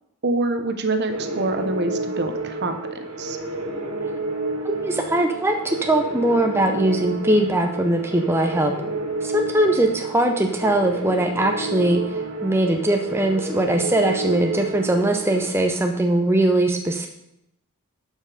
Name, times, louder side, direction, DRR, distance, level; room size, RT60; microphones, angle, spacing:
voice 1, 0.2-3.4, right 2 dB, 50° right, 7 dB, 0.9 m, -26 dB
sound 1, 1.1-15.5, right 2 dB, 70° right, 2.0 m, -30 dB
voice 2, 4.6-8.7 9.2-17.1, right 1 dB, 10° right, 3 dB, 0.6 m, -21 dB
11.5 x 5.5 x 4.9 m, 0.83 s
head